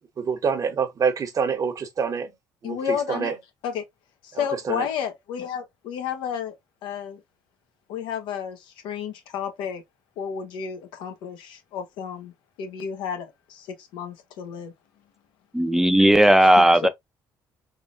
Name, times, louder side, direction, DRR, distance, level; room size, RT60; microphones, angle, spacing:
voice 1, 0.2-2.3 2.6-3.3 4.3-4.8, right 6 dB, 45° right, 1.0 m, -26 dB
voice 2, 2.6-3.3 3.6-3.8 4.2-6.5 6.8-7.2 7.9-9.8 10.2-12.3 12.6-14.7 16.4-16.9, left 8 dB, 80° left, 1.1 m, -31 dB
voice 3, 15.5-16.9, right 1 dB, 5° right, 0.6 m, -16 dB
3.7 x 3.2 x 2.6 m
supercardioid pair, 80°, 8 cm